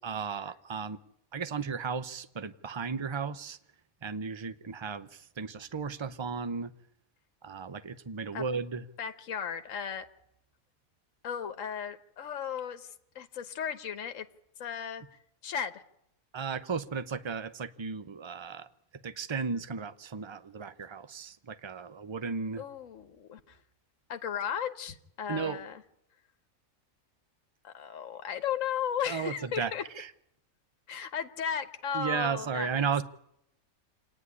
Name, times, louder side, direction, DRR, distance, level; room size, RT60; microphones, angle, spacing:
voice 1, 0.0-1.0 1.3-3.6 4.0-6.7 7.4-8.8 16.3-18.7 19.0-22.6 25.3-25.6 29.1-30.1 31.9-33.0, right 5 dB, 25° right, 13 dB, 0.7 m, -34 dB
voice 2, 9.0-10.1 11.2-12.9 13.1-14.3 14.6-15.0 15.4-15.8 22.6-23.6 24.1-25.8 27.6-29.8 30.9-33.0, left 8 dB, 65° left, 9 dB, 1.5 m, -35 dB
27.0 x 9.9 x 9.7 m, 0.76 s
omnidirectional pair, 1.5 m